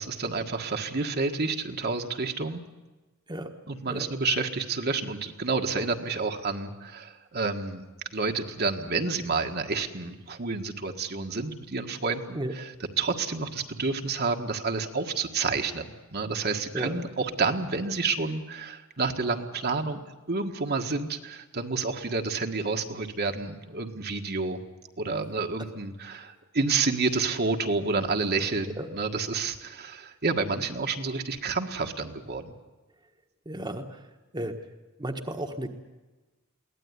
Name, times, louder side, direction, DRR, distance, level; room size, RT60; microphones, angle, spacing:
voice 1, 0.0-2.6 3.7-7.8 8.1-20.0 20.3-24.6 25.0-32.5, right 4 dB, 50° right, 4 dB, 1.6 m, -29 dB
voice 2, 33.4-34.0 34.3-34.5 35.0-35.7, right 1 dB, 20° right, 4 dB, 1.4 m, -33 dB
22.5 x 17.0 x 9.8 m, 1.2 s
head